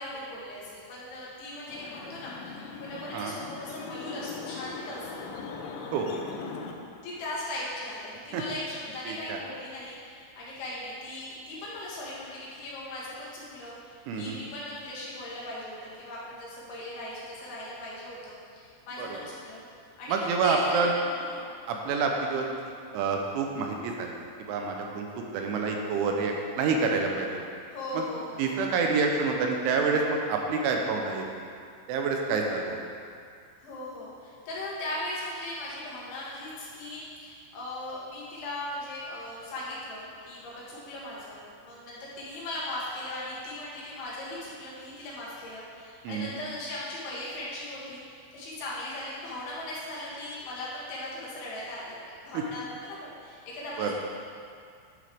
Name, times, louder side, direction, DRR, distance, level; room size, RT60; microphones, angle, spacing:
voice 1, 0.0-5.3 7.0-19.6 20.0-20.8 21.1-21.5 27.7-28.6 33.6-53.9, left 1 dB, 70° left, -7 dB, 4.1 m, -38 dB
sound 1, 1.7-6.7, left 4 dB, 85° left, 3.3 m, -40 dB
voice 2, 9.1-9.4 14.1-14.4 19.0-19.1 20.1-20.9 21.7-22.5 22.9-27.4 27.9-28.0 28.4-31.3 31.9-32.8 46.0-46.3 52.3-52.4 53.8-53.9, right 4 dB, 80° right, 2 dB, 3.1 m, -28 dB
10.5 x 7.8 x 3.5 m, 2.2 s
omnidirectional pair, 5.6 m